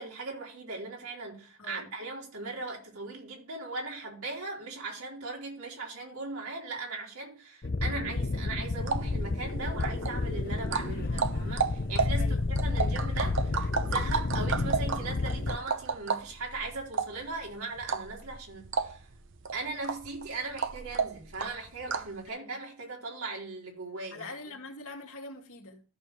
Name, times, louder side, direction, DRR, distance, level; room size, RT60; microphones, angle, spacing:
voice 1, 0.0-13.5 13.8-19.1 19.5-24.3, right 3 dB, 85° right, 4.4 m, -38 dB
voice 2, 1.6-1.9 12.2-12.9 22.3-22.6 24.1-25.8, left 3 dB, 75° left, 2.4 m, -44 dB
sound 1, 7.6-15.6, left 3 dB, 45° left, 0.7 m, -31 dB
sound 2, 8.6-22.2, right 5 dB, 60° right, 0.8 m, -34 dB
14.0 x 6.6 x 3.2 m
head